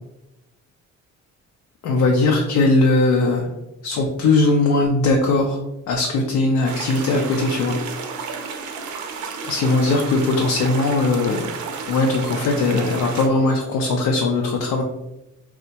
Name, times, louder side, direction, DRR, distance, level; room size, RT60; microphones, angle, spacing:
voice 1, 1.8-3.5 3.8-5.6 5.9-7.8 9.4-11.5 11.9-14.8, left 3 dB, 75° left, 1 dB, 0.5 m, -19 dB
sound 1, 6.6-13.3, right 5 dB, 65° right, 0.5 m, -32 dB
3.4 x 2.1 x 2.7 m, 0.96 s
cardioid pair, 95°, 31 cm